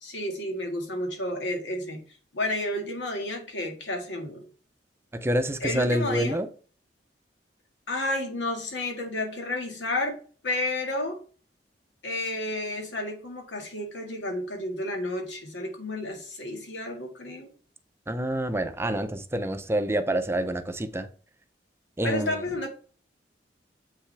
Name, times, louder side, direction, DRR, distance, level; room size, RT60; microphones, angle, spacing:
voice 1, 0.0-2.0 2.3-4.4 5.6-6.4 7.9-10.2 10.4-11.2 12.0-17.5 22.0-22.7, left 1 dB, 90° left, 1.9 m, -31 dB
voice 2, 5.1-6.5 18.1-21.1 22.0-22.4, right 1 dB, 15° right, 0.6 m, -27 dB
7.6 x 5.7 x 3.4 m
head